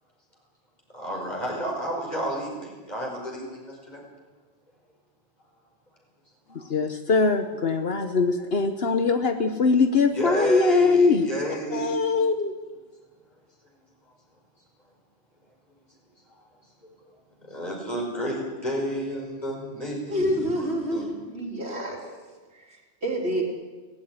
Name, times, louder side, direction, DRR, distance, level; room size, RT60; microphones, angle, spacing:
voice 1, 0.9-4.0 6.5-6.6 10.1-12.0 17.5-21.1, equal, 40° left, -1 dB, 5.8 m, -31 dB
voice 2, 6.5-11.3 11.7-12.5, left 4 dB, 60° left, 7 dB, 1.4 m, -22 dB
voice 3, 20.1-22.0 22.7-23.4, equal, 65° right, 0 dB, 4.1 m, -28 dB
18.0 x 15.5 x 9.7 m, 1.3 s
omnidirectional pair, 1.2 m